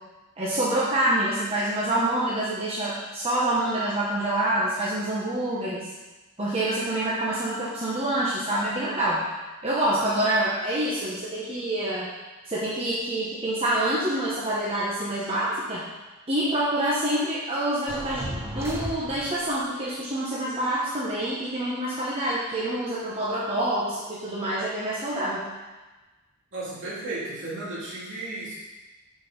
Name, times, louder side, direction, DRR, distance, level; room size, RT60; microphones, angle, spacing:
voice 1, 0.4-5.9 6.4-9.2 9.6-12.1 12.4-15.8 16.3-25.4, right 1 dB, 25° right, -7 dB, 1.1 m, -26 dB
sound 1, 17.9-19.6, equal, 10° right, 0.7 m, -35 dB
voice 2, 26.5-28.5, right 2 dB, 55° right, -8 dB, 3.0 m, -34 dB
6.5 x 6.2 x 5.3 m, 1.2 s
head